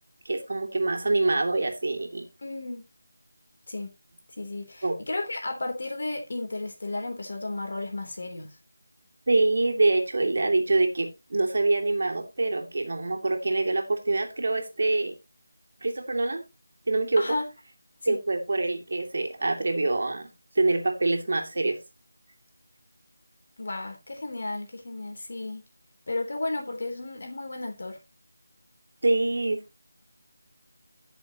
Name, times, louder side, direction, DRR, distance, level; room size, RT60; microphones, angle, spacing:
voice 1, 0.2-2.3 4.8-5.0 9.3-15.1 15.8-16.4 16.9-17.3 18.1-20.3 20.5-21.8 29.0-29.8, right 2 dB, 55° right, 2.7 m, -25 dB
voice 2, 2.4-2.8 3.7-3.9 4.4-8.5 17.2-17.4 18.0-18.2 23.6-25.6 26.1-28.0, left 2 dB, 55° left, 3.4 m, -33 dB
14.5 x 7.0 x 3.0 m
figure-of-eight pair, 170°, 0 cm